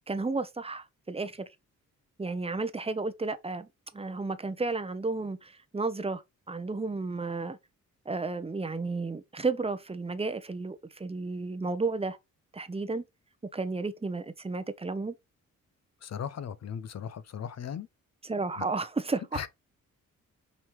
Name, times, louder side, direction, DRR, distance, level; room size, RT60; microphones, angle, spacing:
voice 1, 0.1-1.5 2.2-3.7 3.9-6.2 6.5-7.6 8.1-12.2 12.5-13.0 13.5-15.1 18.3-19.4, right 3 dB, 15° right, 0.7 m, -32 dB
voice 2, 16.0-17.9 18.6-18.7 19.3-19.5, left 8 dB, 50° left, 0.6 m, -37 dB
5.3 x 3.1 x 3.0 m
supercardioid pair, 55°, 34 cm